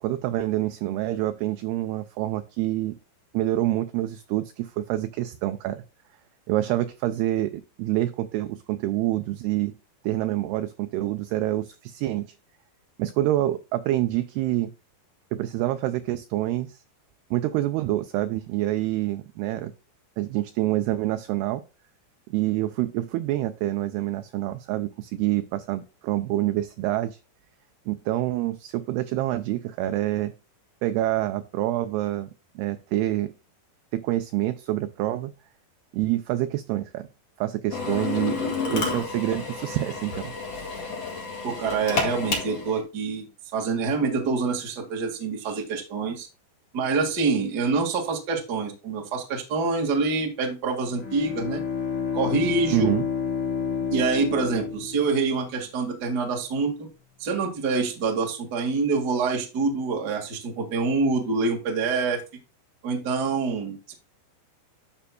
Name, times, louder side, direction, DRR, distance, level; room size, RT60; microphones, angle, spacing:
voice 1, 0.0-3.0 3.3-5.8 6.5-9.8 10.0-12.3 13.0-14.7 15.3-16.8 17.3-19.7 20.2-21.6 22.3-27.2 27.9-30.3 30.8-32.3 32.6-33.3 33.9-35.3 35.9-37.1 37.4-40.3 52.7-53.0, right 15 dB, 85° right, 9 dB, 2.3 m, -27 dB
Drill, 37.7-42.8, left 4 dB, 45° left, 2.4 m, -30 dB
voice 2, 41.4-46.3 46.7-51.6 52.1-52.9 53.9-56.9 57.2-62.2 62.8-63.9, right 4 dB, 55° right, 1 dB, 1.1 m, -26 dB
Bowed string instrument, 50.8-55.6, left 6 dB, 70° left, 1.1 m, -29 dB
11.5 x 6.9 x 2.2 m, 0.29 s
omnidirectional pair, 5.1 m